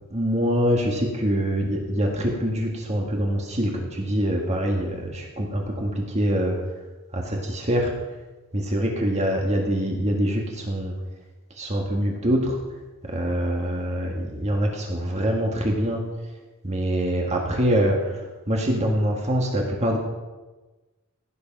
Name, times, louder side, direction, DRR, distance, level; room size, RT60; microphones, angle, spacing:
voice 1, 0.1-6.6 7.1-7.9 8.5-11.0 11.6-12.6 13.0-16.0 16.6-20.0, equal, 30° right, 0 dB, 1.7 m, -24 dB
16.0 x 8.5 x 5.3 m, 1.2 s
head